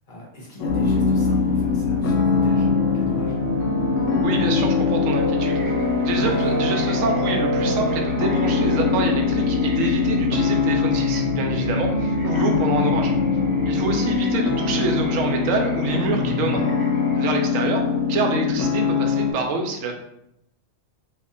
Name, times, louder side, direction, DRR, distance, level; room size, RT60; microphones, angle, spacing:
voice 1, 0.1-3.4 13.8-14.0, equal, 40° left, -4 dB, 1.0 m, -38 dB
sound 1, 0.6-19.3, left 6 dB, 85° left, 1.0 m, -24 dB
sound 2, 0.7-19.4, left 1 dB, 50° right, 0.9 m, -27 dB
voice 2, 4.2-5.5 6.0-13.1 13.7-16.6 17.1-17.8 18.1-19.9, right 3 dB, 85° right, 2 dB, 1.0 m, -26 dB
sound 3, 5.3-17.4, right 1 dB, 25° right, 1.1 m, -45 dB
3.0 x 2.4 x 3.7 m, 0.80 s
omnidirectional pair, 1.3 m